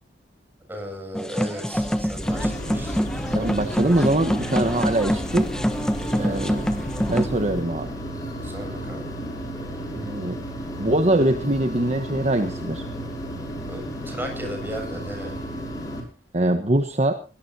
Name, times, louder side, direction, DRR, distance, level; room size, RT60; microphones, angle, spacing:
voice 1, 0.7-3.0 6.1-6.5 8.4-9.0 13.7-15.4, equal, 10° right, 2 dB, 7.3 m, -36 dB
sound 1, 1.1-7.3, equal, 5° left, 1.2 m, -26 dB
sound 2, 1.7-7.6, left 1 dB, 45° left, 1.5 m, -36 dB
sound 3, 2.2-16.0, equal, 20° left, 6.2 m, -33 dB
voice 2, 3.3-5.5 6.2-6.6 7.0-7.9 9.9-10.4 10.8-12.9 16.3-17.1, right 1 dB, 40° right, 7 dB, 1.2 m, -23 dB
22.0 x 18.0 x 2.9 m, 0.36 s
head